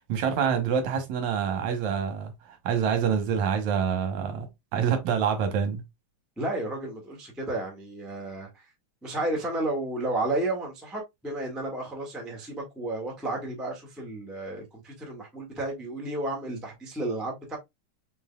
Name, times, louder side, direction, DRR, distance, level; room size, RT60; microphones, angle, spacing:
voice 1, 0.0-5.8, right 7 dB, 75° right, 2.3 m, -27 dB
voice 2, 6.4-8.7 9.0-17.6, right 2 dB, ahead, 0.5 m, -32 dB
5.1 x 3.9 x 2.2 m
omnidirectional pair, 3.4 m